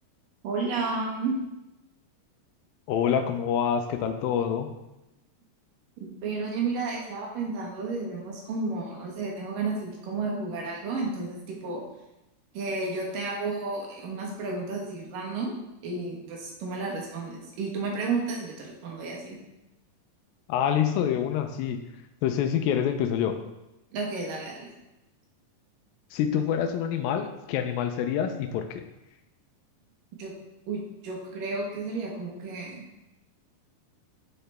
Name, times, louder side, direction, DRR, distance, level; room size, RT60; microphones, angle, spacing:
voice 1, 0.4-1.4 6.0-11.8 12.5-15.6 15.8-19.4 23.9-24.7 30.2-30.3 30.7-32.9, right 3 dB, 75° right, -2 dB, 2.8 m, -32 dB
voice 2, 2.9-4.7 20.5-21.8 22.2-23.4 26.1-28.8, left 8 dB, 90° left, 7 dB, 2.4 m, -26 dB
6.6 x 6.6 x 3.3 m, 0.94 s
omnidirectional pair, 4.1 m